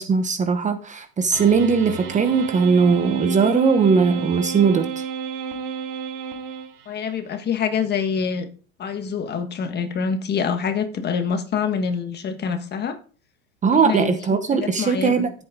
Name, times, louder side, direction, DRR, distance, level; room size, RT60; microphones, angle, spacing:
voice 1, 0.0-5.0 13.6-15.4, right 5 dB, 20° right, 9 dB, 1.0 m, -19 dB
sound 1, 1.3-7.1, right 6 dB, 65° right, 4.9 m, -31 dB
voice 2, 6.9-8.5 8.8-13.0 13.7-15.3, left 6 dB, 25° left, 8 dB, 1.4 m, -26 dB
13.5 x 8.1 x 3.7 m, 0.39 s
supercardioid pair, 135°, 39 cm